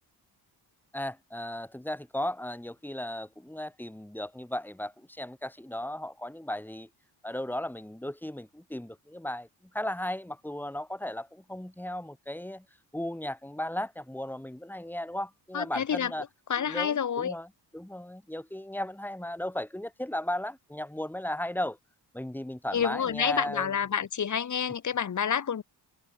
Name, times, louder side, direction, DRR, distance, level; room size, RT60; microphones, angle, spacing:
voice 1, 0.9-6.9 7.2-9.5 9.7-12.6 12.9-16.2 16.6-17.5 17.7-21.8 22.1-23.7, left 1 dB, 5° left, 7.6 m, -35 dB
voice 2, 15.5-16.1 16.5-17.3 22.7-25.6, left 8 dB, 45° left, 1.8 m, -28 dB
cardioid pair, 115°, 42 cm